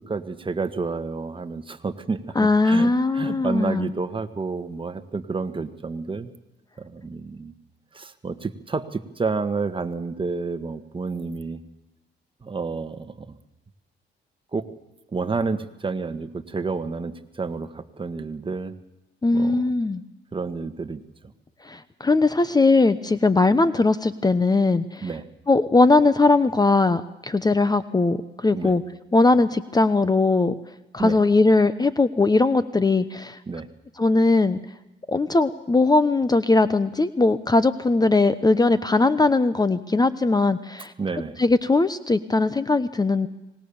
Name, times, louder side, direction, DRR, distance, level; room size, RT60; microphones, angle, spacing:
voice 1, 0.0-6.3 6.8-7.5 7.9-11.6 12.4-13.4 14.5-14.7 15.1-18.7 19.3-19.6 20.3-21.0 25.0-25.2 28.5-28.7 31.0-31.2 33.5-33.7 41.0-41.4, right 4 dB, 25° right, 9 dB, 1.6 m, -30 dB
voice 2, 2.4-3.9 19.2-20.0 21.6-25.1 25.5-28.8 29.1-30.6 30.9-33.4 34.0-34.6 35.1-40.9 41.4-43.3, left 3 dB, 20° left, 14 dB, 0.9 m, -20 dB
25.0 x 20.0 x 7.1 m, 0.98 s
cardioid pair, 90°, 20 cm